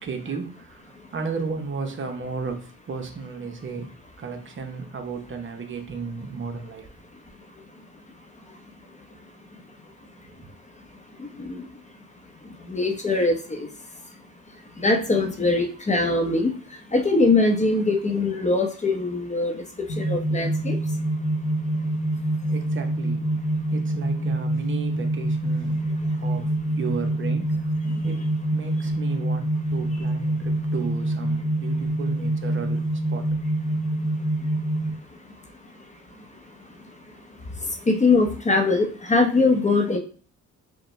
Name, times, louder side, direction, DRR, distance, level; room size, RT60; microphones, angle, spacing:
voice 1, 0.0-3.9 4.2-6.9 10.4-10.5 22.5-23.3 23.7-25.8 26.2-27.5 28.0-28.2 28.5-32.8 33.1-33.3, right 5 dB, 40° right, 5 dB, 0.8 m, -34 dB
voice 2, 12.7-13.7 14.8-16.5 16.9-19.6 20.0-20.8 37.9-40.0, left 3 dB, 25° left, 4 dB, 0.8 m, -22 dB
sound 1, 19.9-34.9, right 1 dB, 75° left, 0.8 m, -26 dB
5.0 x 2.2 x 3.1 m, 0.40 s
cardioid pair, 90°, 30 cm